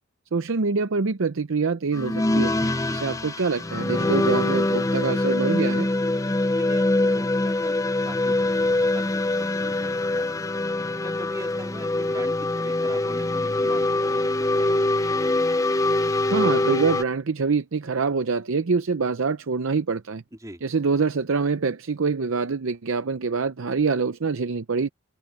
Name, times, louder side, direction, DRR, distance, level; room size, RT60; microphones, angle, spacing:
voice 1, 0.3-2.5 2.9-5.9 16.3-20.2 20.6-24.9, right 4 dB, 65° right, 0.6 m, -25 dB
sound 1, 1.9-17.0, left 2 dB, 15° left, 0.5 m, -24 dB
voice 2, 2.9-3.2 6.6-10.4 11.0-13.8 14.1-14.8 20.3-20.6, right 1 dB, 15° right, 3.4 m, -42 dB
head